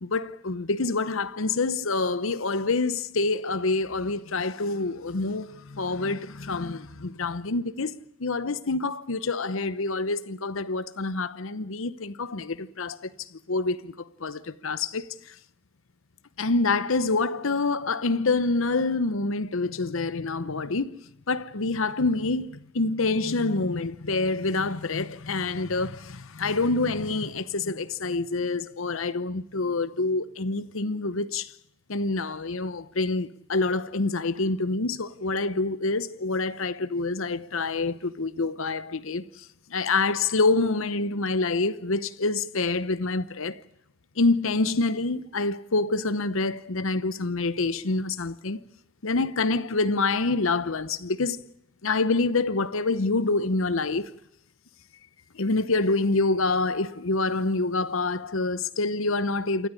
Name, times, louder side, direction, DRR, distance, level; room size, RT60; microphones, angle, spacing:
voice 1, 0.0-7.9 8.2-13.1 13.5-13.9 14.2-15.3 16.4-21.0 21.3-31.5 31.9-39.2 39.7-43.6 44.2-48.6 49.0-51.5 51.8-54.1 55.3-59.7, left 3 dB, 65° left, 0.9 m, -26 dB
28.5 x 13.0 x 9.9 m
head